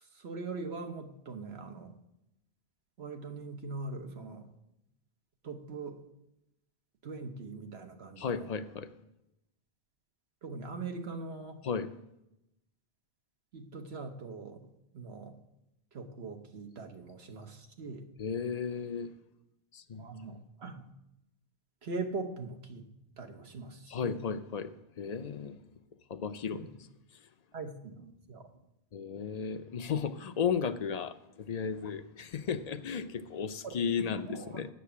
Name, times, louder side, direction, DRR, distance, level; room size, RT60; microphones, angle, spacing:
voice 1, 0.1-1.9 3.0-4.5 5.4-6.0 7.0-8.5 10.4-11.6 13.5-14.6 14.9-15.3 15.9-18.1 19.9-20.8 21.8-22.9 23.2-24.2 27.5-28.4 33.6-34.6, right 3 dB, 75° right, 5 dB, 1.4 m, -41 dB
voice 2, 8.2-8.9 11.6-11.9 18.2-19.1 19.7-20.0 23.9-24.7 25.0-25.6 26.1-26.6 28.9-34.7, left 6 dB, 45° left, 10 dB, 0.6 m, -34 dB
8.2 x 6.8 x 8.4 m, 0.87 s
omnidirectional pair, 1.1 m